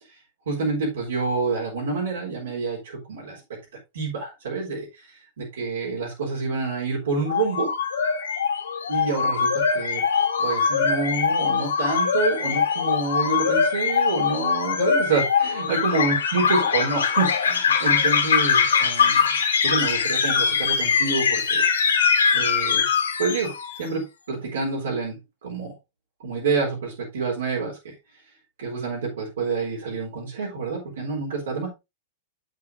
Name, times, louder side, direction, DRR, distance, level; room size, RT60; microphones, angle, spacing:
voice 1, 0.5-3.4 3.9-4.9 5.4-7.7 8.9-10.0 10.4-19.3 19.6-21.6 22.3-22.9 23.2-25.7 26.2-27.9 28.6-31.7, right 4 dB, 75° right, -3 dB, 3.9 m, -27 dB
sound 1, 7.3-23.8, left 6 dB, 80° left, 1.7 m, -22 dB
9.1 x 7.6 x 2.7 m, 0.23 s
hypercardioid pair, 100°, 0 cm